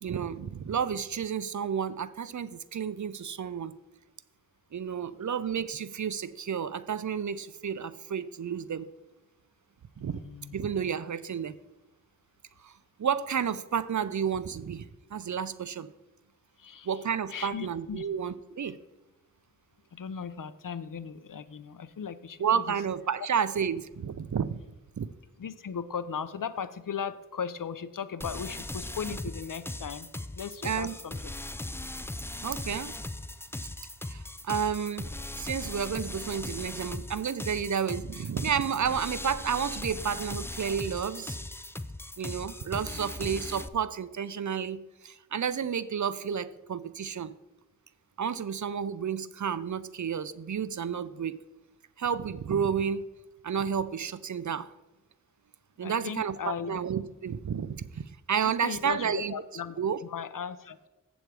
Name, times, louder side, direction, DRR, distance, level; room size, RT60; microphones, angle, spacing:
voice 1, 0.0-3.8 4.7-8.9 10.0-10.2 10.5-11.6 12.6-12.7 13.0-15.9 16.8-18.8 22.4-24.6 25.0-25.1 30.6-30.9 32.4-33.0 34.1-41.4 42.2-47.3 48.2-51.4 52.0-53.1 53.4-54.7 55.8-59.3 59.8-60.0, right 7 dB, 60° right, 15 dB, 0.5 m, -31 dB
voice 2, 10.0-10.6 16.6-17.0 17.3-18.1 19.9-22.8 25.4-31.3 42.9-43.0 55.8-56.8 58.4-60.9, left 7 dB, 75° left, 14 dB, 0.6 m, -37 dB
sound 1, 28.2-43.7, left 1 dB, 10° left, 0.4 m, -39 dB
7.9 x 7.1 x 4.6 m, 1.0 s
wide cardioid pair, 55°, 33 cm